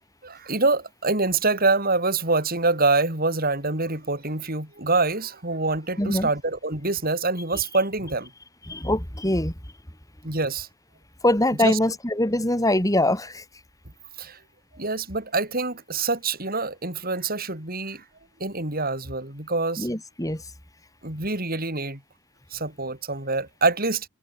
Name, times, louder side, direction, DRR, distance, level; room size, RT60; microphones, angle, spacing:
voice 1, 0.2-8.3 10.2-10.7 11.6-11.8 14.2-14.4 14.8-18.0 18.4-19.9 21.0-22.0 22.5-24.1, right 3 dB, 45° right, 7.1 m, -25 dB
voice 2, 6.0-6.3 8.7-9.5 11.2-13.4 19.8-20.5, left 1 dB, 15° left, 4.6 m, -23 dB
head